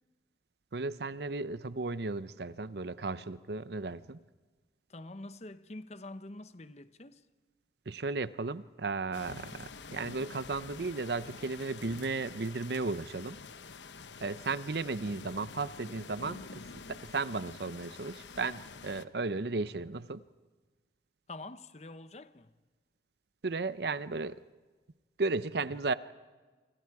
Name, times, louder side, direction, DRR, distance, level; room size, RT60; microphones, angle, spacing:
voice 1, 0.7-4.2 7.9-13.4 14.2-20.2 23.4-24.4 25.2-25.9, right 3 dB, 65° right, 0.7 m, -35 dB
voice 2, 4.9-7.2 21.3-22.5, left 2 dB, 40° left, 0.9 m, -46 dB
sound 1, 9.1-19.1, left 4 dB, 85° left, 1.0 m, -48 dB
29.5 x 26.0 x 4.8 m
head